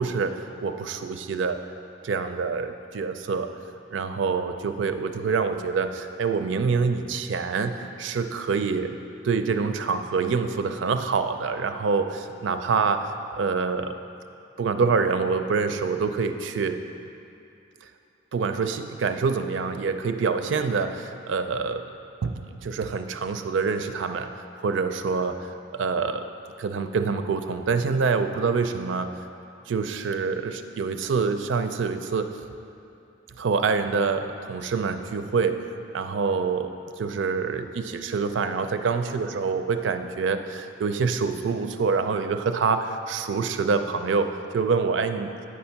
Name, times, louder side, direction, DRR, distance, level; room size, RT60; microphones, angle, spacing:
voice 1, 0.0-1.6 2.0-3.5 3.9-9.0 9.2-13.1 13.4-14.0 14.6-16.8 18.3-21.8 22.2-25.5 25.7-26.2 26.6-29.1 29.7-32.3 33.4-35.6 35.9-36.7 37.0-45.3, right 5 dB, 75° right, 8 dB, 0.4 m, -26 dB
8.5 x 4.3 x 5.7 m, 2.7 s
head